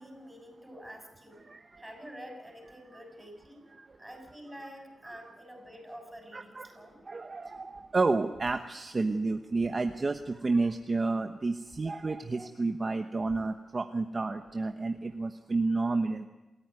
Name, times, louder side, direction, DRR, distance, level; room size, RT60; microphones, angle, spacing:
voice 1, 0.0-1.5 1.8-3.6 4.0-7.0, equal, 10° right, 3 dB, 7.0 m, -47 dB
voice 2, 1.4-1.8 2.7-3.0 3.7-4.0 6.3-16.2, right 3 dB, 30° right, 6 dB, 1.1 m, -31 dB
28.0 x 14.5 x 9.5 m, 1.1 s
wide cardioid pair, 115°, 0 cm